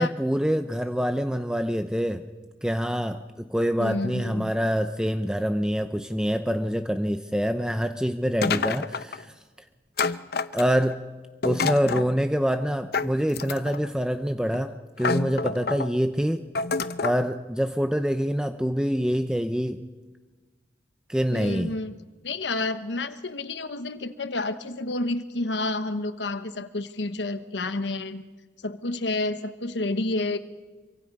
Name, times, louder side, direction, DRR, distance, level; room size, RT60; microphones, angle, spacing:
voice 1, 0.0-2.3 2.6-9.3 10.5-11.0 11.4-16.5 17.0-19.8 21.1-21.8, equal, 5° right, 8 dB, 0.6 m, -26 dB
voice 2, 3.8-4.5 11.8-12.0 21.3-21.9 22.2-28.2 28.6-30.4, left 2 dB, 85° left, 10 dB, 1.1 m, -30 dB
sound 1, 8.4-9.2 10.0-10.9 11.4-12.1 12.9-13.9 14.5-14.6 15.0-15.9 16.6-17.2, left 4 dB, 60° left, 0.7 m, -28 dB
26.5 x 24.0 x 5.4 m, 1.3 s
head